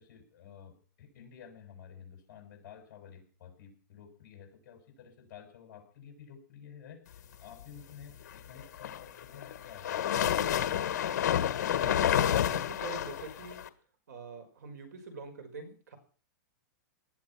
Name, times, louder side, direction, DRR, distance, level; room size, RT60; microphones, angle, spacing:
voice 1, 0.0-11.2, left 8 dB, 35° left, 5 dB, 6.7 m, -51 dB
sound 1, 8.6-13.7, left 10 dB, 55° left, 1.6 m, -29 dB
voice 2, 11.8-13.6 14.1-16.0, right 4 dB, 60° right, 9 dB, 5.6 m, -44 dB
19.5 x 12.0 x 6.0 m, 0.41 s
supercardioid pair, 180°, 10 cm